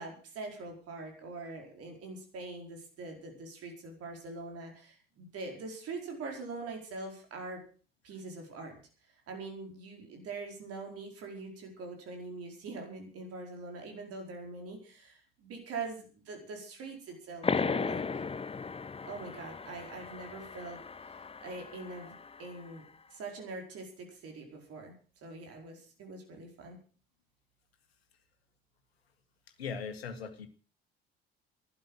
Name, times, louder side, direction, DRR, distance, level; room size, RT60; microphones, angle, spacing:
voice 1, 0.0-7.6 8.0-8.8 9.3-18.0 19.0-22.1 22.4-24.9 25.2-26.8, right 3 dB, 50° right, 2 dB, 4.8 m, -43 dB
sound 1, 17.4-22.7, left 5 dB, 20° left, 0.9 m, -36 dB
voice 2, 29.6-30.5, left 5 dB, 75° left, 8 dB, 1.8 m, -39 dB
15.5 x 12.0 x 6.4 m, 0.39 s
figure-of-eight pair, 55°, 31 cm